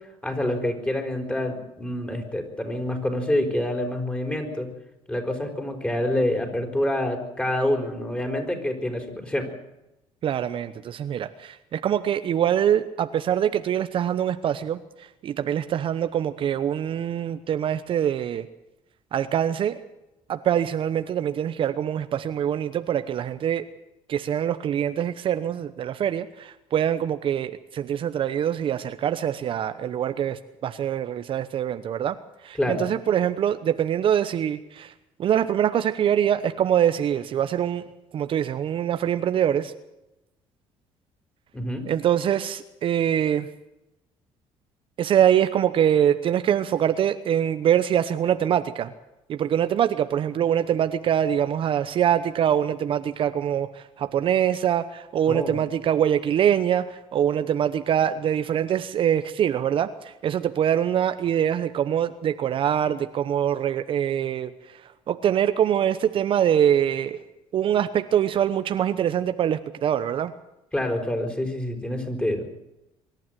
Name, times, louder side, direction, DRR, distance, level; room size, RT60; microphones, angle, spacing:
voice 1, 0.2-4.7 5.1-9.5 32.6-32.8 41.5-41.8 55.3-55.6 70.7-72.4, left 1 dB, 10° left, 3 dB, 5.1 m, -27 dB
voice 2, 10.2-18.5 19.1-19.8 20.3-23.6 24.1-32.2 32.4-34.9 35.2-39.7 41.9-43.5 45.0-48.9 49.3-67.2 67.5-70.3, right 9 dB, 50° right, 10 dB, 1.0 m, -24 dB
24.5 x 12.0 x 9.2 m, 0.91 s
cardioid pair, 115°, 11 cm